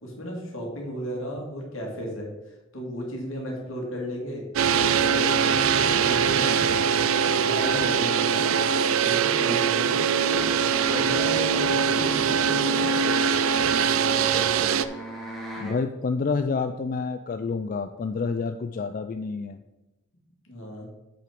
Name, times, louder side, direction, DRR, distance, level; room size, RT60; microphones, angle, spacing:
voice 1, 0.0-4.5 4.8-6.6 7.4-8.5 9.0-10.0 10.2-10.4 10.9-13.2 18.7-19.0 20.4-20.9, equal, 75° left, -1 dB, 2.5 m, -34 dB
sound 1, 4.6-14.9, right 7 dB, 80° right, 0.4 m, -22 dB
sound 2, 13.2-15.8, right 1 dB, ahead, 1.5 m, -41 dB
voice 2, 15.6-19.6, left 4 dB, 40° left, 8 dB, 0.3 m, -28 dB
7.8 x 5.8 x 5.1 m, 1.0 s
head